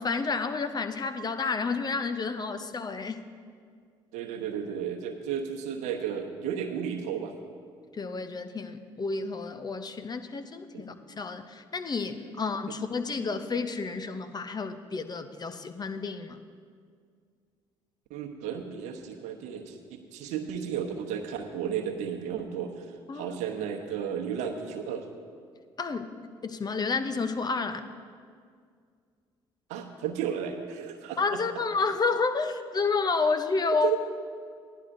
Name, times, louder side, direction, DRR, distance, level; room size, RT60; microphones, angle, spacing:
voice 1, 0.0-3.2 8.0-16.4 23.1-23.4 25.8-26.1 26.4-27.8 31.2-34.0, left 4 dB, 35° left, 9 dB, 0.7 m, -30 dB
voice 2, 4.1-7.3 10.7-10.9 18.1-22.9 23.1-25.1 29.7-31.4 33.8-34.0, right 8 dB, 75° right, 4 dB, 0.9 m, -33 dB
15.5 x 11.0 x 2.6 m, 2.1 s
hypercardioid pair, 55°, 12 cm